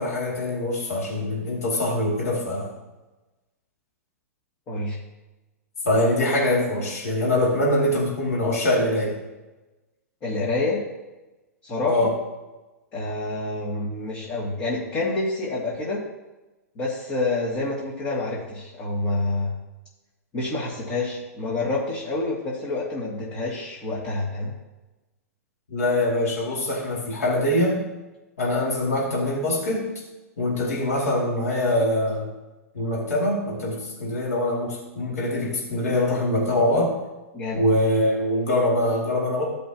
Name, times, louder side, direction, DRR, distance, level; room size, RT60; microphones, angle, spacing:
voice 1, 0.0-2.7 5.8-9.2 11.9-12.1 25.7-27.8 28.4-29.9 30.4-32.3 32.7-37.0 37.5-39.4, left 1 dB, 75° left, -4 dB, 2.5 m, -23 dB
voice 2, 4.7-5.0 10.2-10.8 11.6-12.1 12.9-16.1 16.8-19.5 20.3-24.5 37.3-37.6, left 2 dB, 35° left, -6 dB, 2.2 m, -27 dB
14.5 x 5.5 x 2.9 m, 1.1 s
hypercardioid pair, 110°, 8 cm